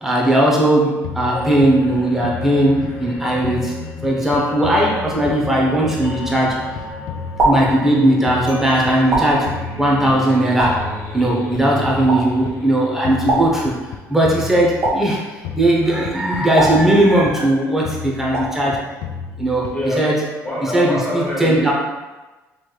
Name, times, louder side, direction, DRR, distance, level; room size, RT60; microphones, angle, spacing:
voice 1, 0.0-6.6 7.4-10.8 11.1-13.7 14.1-18.8 19.4-20.2 20.7-21.7, right 1 dB, 5° right, -4 dB, 0.7 m, -18 dB
sound 1, 1.0-3.1 3.4-5.6 5.9-8.0 8.3-10.4 10.7-12.6 13.0-15.2 15.4-17.5 17.8-20.0, left 7 dB, 75° left, 0.3 m, -32 dB
sound 2, 1.3-14.3, left 1 dB, 40° left, 0.8 m, -34 dB
sound 3, 7.4-8.3 9.1-10.0 10.6-11.4 12.1-12.7 13.3-14.2 14.8-15.7 16.6-17.5 18.3-18.9, right 1 dB, 45° right, 1.3 m, -24 dB
voice 2, 19.7-21.7, equal, 15° left, -6 dB, 1.1 m, -25 dB
3.1 x 3.0 x 2.3 m, 1.2 s
cardioid pair, 115°, 6 cm